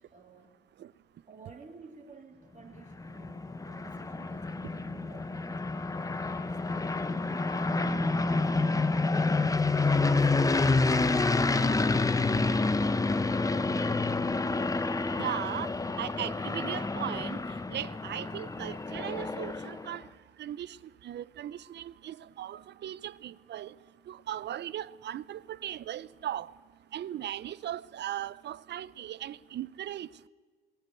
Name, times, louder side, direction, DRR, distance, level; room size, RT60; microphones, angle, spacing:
voice 1, 0.1-0.6 1.3-5.7 6.1-8.5 8.9-11.0 11.5-12.3, right 4 dB, 35° right, 3.2 m, -52 dB
sound 1, 2.8-20.0, left 3 dB, 15° left, 0.8 m, -28 dB
voice 2, 15.1-15.7 16.0-17.4 17.7-20.1 20.4-20.8 21.0-23.7 24.1-26.5 26.9-30.3, right 11 dB, 60° right, 0.6 m, -38 dB
18.0 x 17.5 x 9.2 m
cardioid pair, 90°, 20 cm